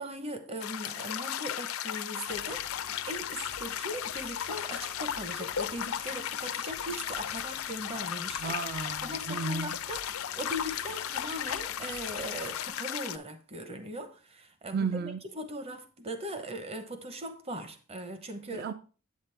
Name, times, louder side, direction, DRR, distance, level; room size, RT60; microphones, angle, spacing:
voice 1, 0.0-8.6 9.0-18.7, equal, 30° right, 0.8 m, -39 dB
sound 1, 0.6-13.2, left 10 dB, 85° left, 0.5 m, -35 dB
sound 2, 2.2-12.7, right 1 dB, 85° right, 2.4 m, -53 dB
voice 2, 8.4-9.8 14.7-15.2 18.5-18.7, right 4 dB, 45° right, 0.3 m, -33 dB
8.3 x 7.4 x 3.3 m
head